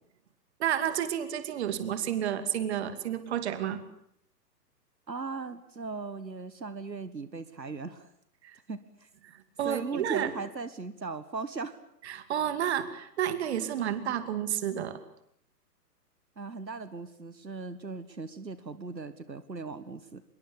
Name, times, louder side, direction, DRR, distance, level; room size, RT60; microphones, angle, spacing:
voice 1, 0.6-3.8 8.4-8.6 9.3-10.3 12.0-15.0, right 10 dB, 40° right, 12 dB, 2.5 m, -31 dB
voice 2, 5.1-8.1 8.7-9.1 9.6-11.8 16.4-20.2, right 4 dB, 80° right, 14 dB, 1.7 m, -38 dB
25.5 x 22.5 x 8.6 m, 0.72 s
figure-of-eight pair, 125°, 50 cm